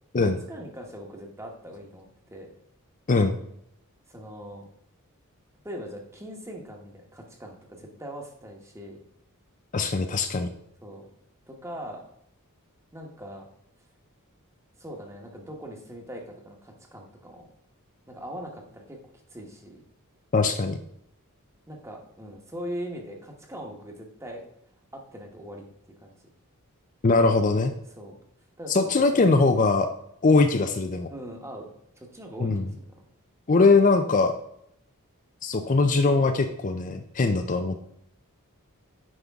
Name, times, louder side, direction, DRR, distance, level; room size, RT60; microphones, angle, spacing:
voice 1, 0.2-2.5 4.1-4.7 5.6-9.0 10.8-11.0 11.5-12.1 12.9-13.5 14.8-17.5 18.1-19.0 19.3-19.8 21.7-24.4 24.9-25.7 26.0-26.2 28.0-28.2 28.6-29.5 31.1-32.7, equal, 15° right, 2 dB, 1.3 m, -41 dB
voice 2, 9.7-10.5 20.3-20.8 27.0-27.7 28.7-29.9 30.2-31.1 32.4-32.7 33.5-34.3 35.4-37.8, left 3 dB, 35° left, 6 dB, 0.5 m, -21 dB
9.5 x 5.4 x 3.6 m, 0.74 s
head